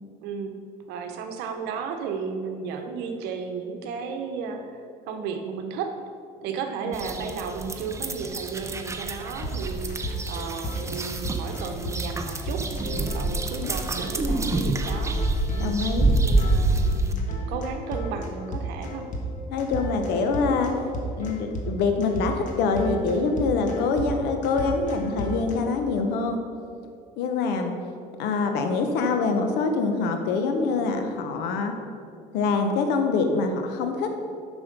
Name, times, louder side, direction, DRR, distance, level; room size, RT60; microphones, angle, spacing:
voice 1, 0.2-0.5 0.9-5.9 6.4-15.2 15.5-15.8 16.1-19.0, right 5 dB, 80° right, 5 dB, 1.0 m, -34 dB
sound 1, 6.9-17.1, right 2 dB, 15° right, 0.7 m, -27 dB
sound 2, 9.4-13.7 14.0-14.1 14.4-14.5 14.9-25.5, right 1 dB, 50° left, 1.5 m, -34 dB
voice 2, 13.2-13.7 15.6-16.1 19.5-20.7 21.2-26.4 27.2-27.8 28.2-31.7 32.3-34.1, left 4 dB, 80° left, 5 dB, 1.0 m, -25 dB
7.2 x 6.3 x 5.3 m, 2.4 s
cardioid pair, 105°, 17 cm